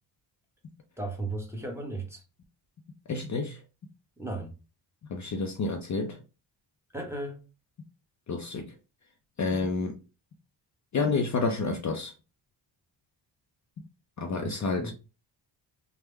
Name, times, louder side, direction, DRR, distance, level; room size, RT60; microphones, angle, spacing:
voice 1, 1.0-2.2 4.2-4.5 6.9-7.4 14.3-14.9, right 2 dB, 5° right, 0.9 m, -36 dB
voice 2, 3.1-3.6 5.1-6.2 8.3-8.7 9.4-10.0 10.9-12.1 14.2-14.9, left 4 dB, 40° left, 0.5 m, -29 dB
3.5 x 2.1 x 3.2 m
cardioid pair, 110°, 44 cm